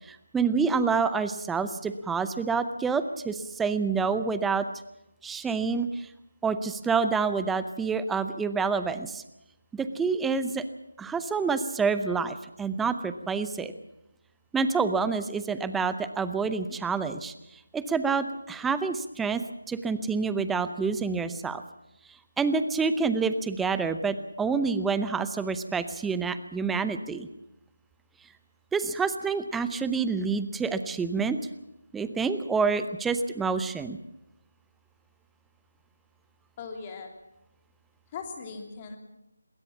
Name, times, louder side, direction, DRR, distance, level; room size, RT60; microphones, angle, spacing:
voice 1, 0.1-4.7 5.2-6.1 6.4-9.2 9.7-10.6 11.0-13.7 14.5-17.3 17.7-21.6 22.4-27.3 28.7-31.4 31.9-34.0, right 5 dB, 5° right, 11 dB, 0.7 m, -28 dB
voice 2, 36.6-37.1 38.1-39.0, left 5 dB, 25° left, 4 dB, 2.9 m, -39 dB
21.5 x 17.0 x 7.2 m, 0.90 s
figure-of-eight pair, 160°, 0 cm